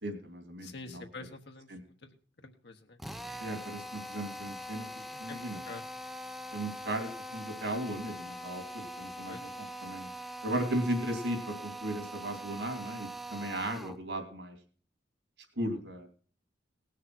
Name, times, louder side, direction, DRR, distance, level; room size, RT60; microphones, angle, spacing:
voice 1, 0.0-1.0 1.7-1.8 3.4-4.9 5.2-5.6 6.5-9.5 9.8-10.1 10.4-14.5 15.6-16.1, right 1 dB, 65° right, 6 dB, 3.1 m, -36 dB
voice 2, 0.6-2.2 2.4-3.0 5.3-5.9 9.3-9.5, left 3 dB, 60° left, 3 dB, 1.2 m, -47 dB
Drill, 3.0-14.0, equal, ahead, 0.6 m, -43 dB
18.5 x 6.7 x 6.1 m, 0.42 s
head